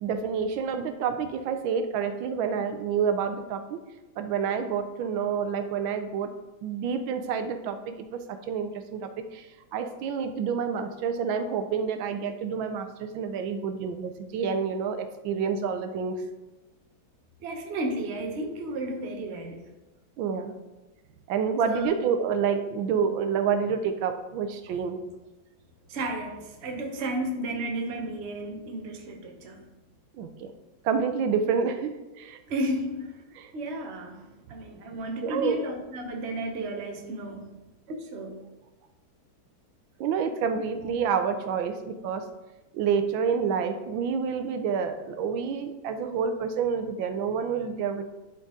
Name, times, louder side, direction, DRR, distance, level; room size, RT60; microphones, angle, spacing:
voice 1, 0.0-3.8 4.2-6.3 6.6-16.2 20.2-20.5 21.3-25.0 30.2-30.5 30.8-32.4 33.4-33.5 35.2-35.6 40.0-42.2 42.7-48.0, right 6 dB, 85° right, 8 dB, 1.4 m, -28 dB
voice 2, 17.4-19.6 21.6-21.9 25.9-29.6 32.5-33.2 33.5-37.5 37.9-38.4, right 1 dB, 45° right, 2 dB, 1.0 m, -33 dB
11.5 x 4.0 x 3.6 m, 1.1 s
omnidirectional pair, 2.1 m